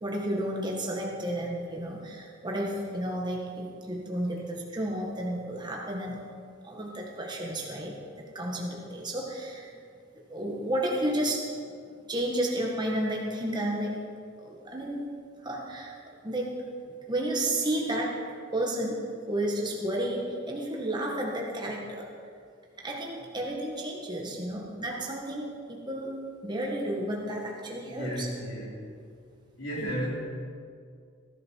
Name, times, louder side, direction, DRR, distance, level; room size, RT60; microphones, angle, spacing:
voice 1, 0.0-6.2 6.6-8.0 8.3-9.7 10.3-11.5 12.1-14.0 14.4-15.1 15.4-15.9 16.2-16.5 16.9-18.2 18.5-22.1 22.8-26.2 26.4-28.3 29.7-29.9, right 1 dB, 20° right, -2 dB, 1.7 m, -32 dB
voice 2, 27.8-28.8 29.6-30.1, equal, 90° left, -3 dB, 4.2 m, -34 dB
19.5 x 12.0 x 4.7 m, 2.3 s
head